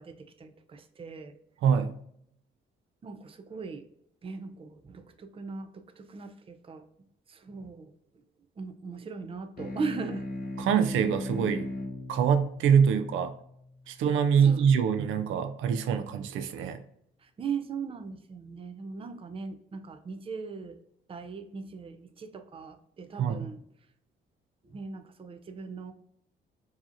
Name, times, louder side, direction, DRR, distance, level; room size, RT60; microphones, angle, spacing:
voice 1, 0.0-1.4 3.0-3.8 4.2-6.9 7.3-8.2 8.6-10.3 13.9-14.0 14.4-14.7 17.2-20.8 21.1-23.6 24.6-25.9, right 5 dB, 30° right, 8 dB, 0.5 m, -39 dB
sound 1, 9.6-14.4, left 2 dB, 45° left, 1.2 m, -38 dB
voice 2, 10.6-11.7 12.1-13.3 13.9-16.8 23.2-23.5, right 7 dB, 80° right, 8 dB, 0.5 m, -24 dB
4.7 x 2.8 x 2.5 m, 0.70 s
cardioid pair, 90°, 20 cm